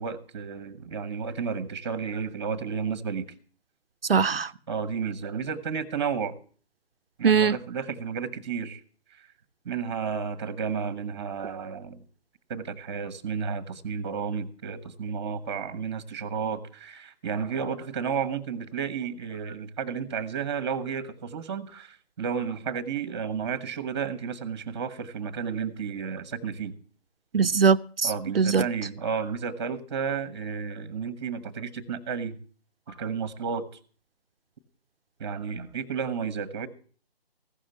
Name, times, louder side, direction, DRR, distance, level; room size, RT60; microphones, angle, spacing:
voice 1, 0.0-3.3 4.7-6.3 7.2-8.8 9.1-9.2 9.6-12.0 12.5-26.7 28.0-32.4 32.9-33.7 35.2-36.7, right 6 dB, 25° right, 14 dB, 1.1 m, -32 dB
voice 2, 4.1-4.5 7.2-7.6 27.3-28.1 28.4-28.6, right 6 dB, 65° right, 12 dB, 0.6 m, -21 dB
15.0 x 6.5 x 8.1 m, 0.43 s
figure-of-eight pair, 150°, 31 cm